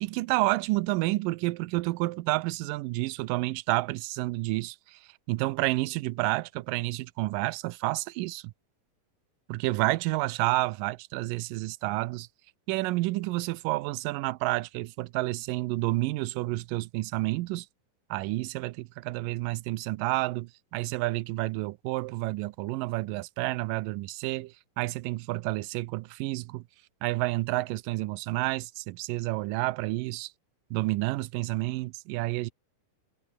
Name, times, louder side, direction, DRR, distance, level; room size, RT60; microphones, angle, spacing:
voice 1, 0.0-5.0 5.3-8.5 9.5-12.3 12.7-17.7 18.1-26.6 27.0-30.3 30.7-32.5, right 20 dB, 80° right, 2.2 m, -30 dB
omnidirectional pair, 4.1 m